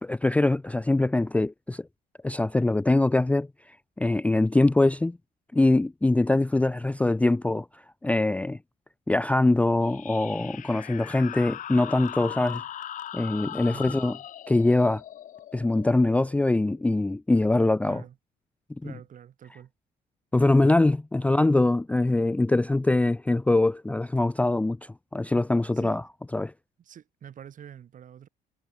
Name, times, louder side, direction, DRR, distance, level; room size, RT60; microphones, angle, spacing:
voice 1, 0.0-1.8 2.2-3.5 4.0-5.2 5.5-7.7 8.0-8.6 9.1-12.6 13.1-14.2 14.5-15.0 15.5-18.0 18.8-18.9 20.3-26.0 26.3-26.5, left 2 dB, 10° left, 0.5 m, -23 dB
sound 1, 9.8-17.1, left 11 dB, 50° left, 0.8 m, -40 dB
voice 2, 13.7-14.0 17.8-18.2 18.8-19.7 25.7-26.0 26.8-28.3, right 9 dB, 50° right, 4.7 m, -46 dB
cardioid pair, 110°, 17 cm